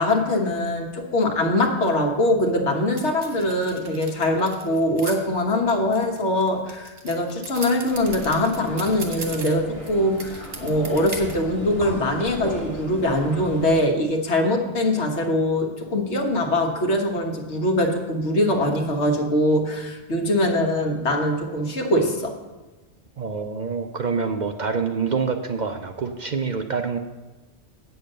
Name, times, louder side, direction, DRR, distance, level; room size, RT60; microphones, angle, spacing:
voice 1, 0.0-22.3, left 1 dB, 75° left, 2 dB, 1.6 m, -22 dB
sound 1, 3.0-5.2 5.7-9.9 10.2-11.4, right 3 dB, 85° right, 1.6 m, -37 dB
sound 2, 7.9-13.7, equal, 30° right, 2.9 m, -36 dB
voice 2, 23.2-27.0, right 5 dB, 50° right, 6 dB, 0.6 m, -26 dB
8.6 x 6.9 x 6.6 m, 1.2 s
omnidirectional pair, 1.2 m